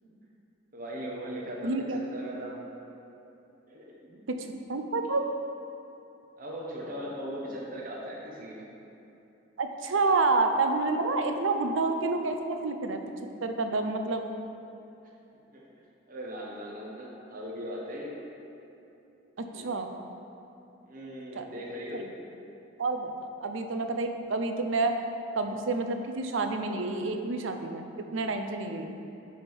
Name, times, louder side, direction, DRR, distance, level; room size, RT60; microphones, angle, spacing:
voice 1, 0.7-2.6 3.7-4.2 6.4-8.7 15.5-15.7 16.1-18.2 19.5-19.7 20.8-22.0, equal, 45° right, -4 dB, 1.0 m, -39 dB
voice 2, 1.6-2.0 4.3-5.3 9.6-13.0 13.4-14.3 19.4-20.0 21.3-21.5 21.9-22.1 22.8-24.9 25.4-28.9, right 3 dB, 80° right, 6 dB, 0.6 m, -29 dB
9.9 x 3.6 x 6.1 m, 3.0 s
head